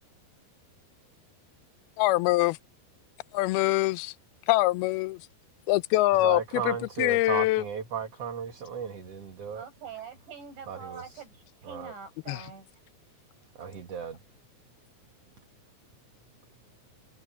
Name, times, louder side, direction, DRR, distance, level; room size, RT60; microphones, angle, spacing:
voice 1, 2.0-2.6 3.3-4.1 4.5-5.2 5.7-7.6 12.3-12.4, left 19 dB, 80° left, 2.4 m, -24 dB
voice 2, 6.2-9.6 10.7-11.0 11.6-11.9 13.6-14.2, right 7 dB, 50° right, 2.1 m, -35 dB
voice 3, 9.5-11.3 11.6-12.7, right 6 dB, 85° right, 10.0 m, -44 dB
omnidirectional pair, 4.9 m